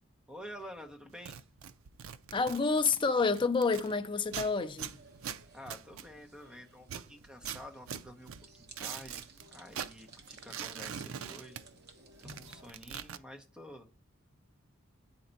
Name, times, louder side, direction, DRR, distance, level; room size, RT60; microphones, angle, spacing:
voice 1, 0.3-1.4 5.5-8.3 8.6-9.3 9.5-11.6 12.2-13.9, equal, 5° right, 0.8 m, -49 dB
sound 1, 1.1-3.9 4.3-6.5 6.8-9.4 9.7-11.9 12.2-13.2, right 8 dB, 90° right, 0.4 m, -43 dB
voice 2, 2.3-5.0, left 4 dB, 25° left, 0.4 m, -29 dB
sound 2, 4.8-12.7, right 2 dB, 50° right, 1.0 m, -57 dB
8.4 x 4.4 x 4.0 m
head